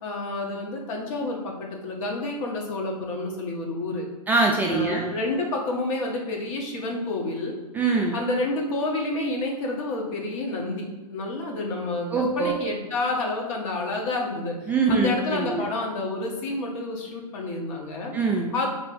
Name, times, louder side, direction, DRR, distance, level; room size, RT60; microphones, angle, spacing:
voice 1, 0.0-4.1 4.7-7.5 8.1-12.1 12.4-18.1 18.5-18.7, left 2 dB, 55° left, 0 dB, 1.3 m, -29 dB
voice 2, 4.3-5.1 7.7-8.2 12.1-12.6 14.7-15.6 18.1-18.5, right 3 dB, 10° right, -2 dB, 0.3 m, -23 dB
3.4 x 3.3 x 3.8 m, 1.2 s
hypercardioid pair, 130°, 20 cm